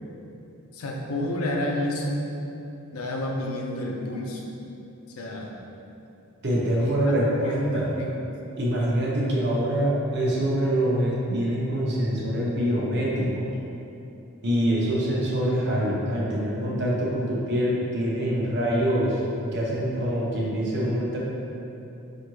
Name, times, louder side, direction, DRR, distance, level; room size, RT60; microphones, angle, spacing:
voice 1, 0.7-2.2 2.9-4.4 5.2-5.5 6.8-8.1, left 1 dB, 80° left, 0 dB, 0.5 m, -30 dB
voice 2, 6.4-7.9 8.6-13.3 14.4-19.2 19.5-21.2, equal, 50° right, -5 dB, 0.7 m, -25 dB
4.9 x 2.5 x 3.0 m, 2.8 s
head